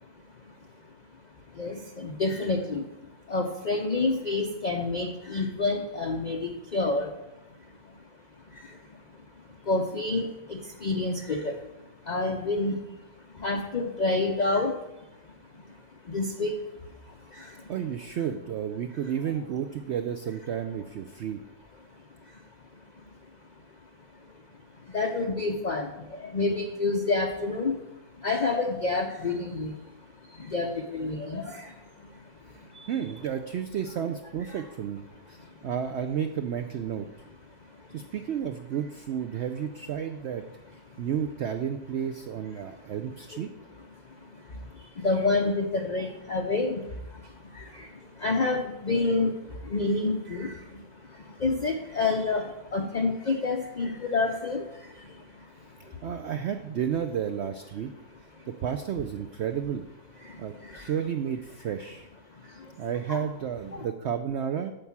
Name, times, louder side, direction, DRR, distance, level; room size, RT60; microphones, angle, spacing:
voice 1, 1.5-2.9 3.3-7.2 7.7-8.0 8.4-9.2 9.6-13.0 13.3-15.8 16.0-17.7 22.3-22.4 22.9-23.0 24.8-29.9 30.2-32.9 34.5-34.6 35.4-35.7 37.7-38.0 40.9-41.0 42.6-42.8 43.3-43.4 44.0-56.1 58.3-58.5 60.2-61.0 62.4-62.8 63.1-63.2 63.7-63.8, left 3 dB, 60° left, 2 dB, 0.4 m, -30 dB
voice 2, 17.7-21.4 32.5-35.0 35.3-37.1 37.9-40.4 41.0-43.5 56.0-57.9 58.6-59.8 60.4-62.1 62.8-64.7, right 8 dB, 90° right, 8 dB, 0.6 m, -32 dB
8.7 x 4.7 x 7.2 m, 0.95 s
omnidirectional pair, 1.7 m